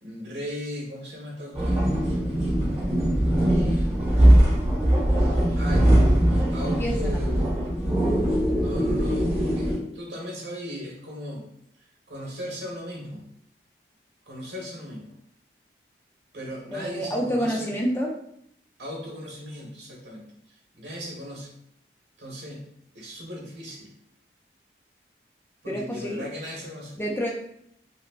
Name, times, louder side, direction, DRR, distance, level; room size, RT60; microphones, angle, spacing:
voice 1, 0.0-1.9 3.5-4.1 5.5-5.9 6.5-7.7 8.6-11.5 12.1-13.2 14.3-15.1 16.3-17.7 18.8-20.3 20.7-21.6 22.2-23.9 25.6-27.0, equal, 90° right, -3 dB, 1.3 m, -37 dB
sound 1, 1.5-9.8, right 1 dB, 35° right, 1.4 m, -21 dB
voice 2, 6.8-7.3 16.7-18.1 25.7-26.3 27.0-27.3, equal, 15° left, -1 dB, 0.4 m, -28 dB
5.0 x 2.2 x 2.4 m, 0.71 s
head